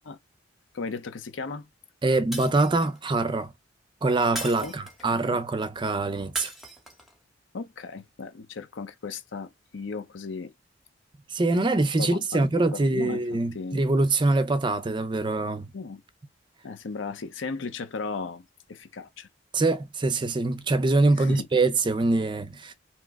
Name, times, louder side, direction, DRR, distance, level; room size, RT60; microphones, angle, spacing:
voice 1, 0.7-1.7 4.6-4.7 7.5-10.5 12.0-13.8 15.7-16.0 16.6-19.3 21.2-21.5, left 4 dB, 85° left, 0.6 m, -36 dB
voice 2, 2.0-3.5 4.0-6.5 11.3-15.7 19.5-22.7, right 2 dB, 25° right, 0.4 m, -24 dB
Shatter, 2.3-3.0 4.3-5.2 6.4-7.1, equal, ahead, 0.8 m, -38 dB
2.9 x 2.1 x 3.4 m
head